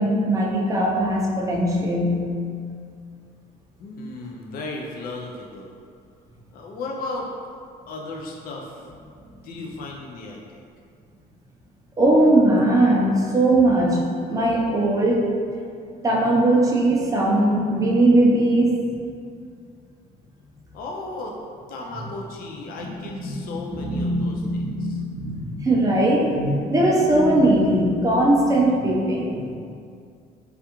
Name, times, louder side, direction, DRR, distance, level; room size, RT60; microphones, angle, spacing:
voice 1, 0.0-2.2 12.0-14.0 14.3-15.3 16.0-18.8 22.8-22.9 23.1-29.4, right 1 dB, 20° right, -3 dB, 0.6 m, -20 dB
voice 2, 3.8-5.7 6.5-7.3 7.9-8.8 9.4-10.6 20.7-21.4 21.7-25.0, left 2 dB, 60° left, -1 dB, 0.4 m, -35 dB
3.4 x 2.3 x 2.9 m, 2.3 s
cardioid pair, 110°, 17 cm